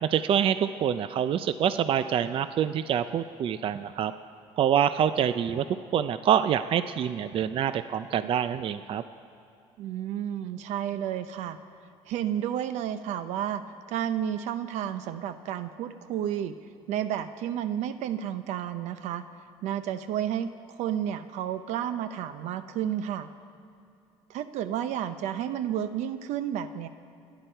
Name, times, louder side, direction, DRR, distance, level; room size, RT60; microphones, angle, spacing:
voice 1, 0.0-4.1 4.6-5.6 5.9-9.0, right 9 dB, 50° right, 12 dB, 0.5 m, -26 dB
voice 2, 9.8-11.6 12.1-13.6 13.9-16.6 16.9-19.3 19.6-20.5 20.8-23.3 24.3-26.9, right 10 dB, 75° right, 11 dB, 0.8 m, -31 dB
29.5 x 10.5 x 4.6 m, 2.7 s
cardioid pair, 110°, 12 cm